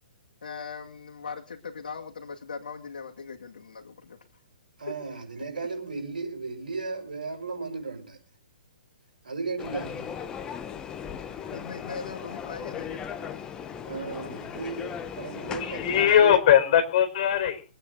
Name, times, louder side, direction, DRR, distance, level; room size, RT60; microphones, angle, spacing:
voice 1, 0.4-4.2 4.9-5.2 11.2-13.5 13.9-14.3, left 5 dB, 75° left, 2.3 m, -40 dB
voice 2, 4.8-8.2 9.2-10.2 13.9-16.3, right 4 dB, 80° right, 5.7 m, -35 dB
sound 1, 9.6-16.1, left 7 dB, 15° left, 1.1 m, -37 dB
voice 3, 14.1-14.7 15.1-17.6, left 10 dB, 45° left, 4.3 m, -22 dB
24.5 x 8.9 x 3.9 m
hypercardioid pair, 135°, 5 cm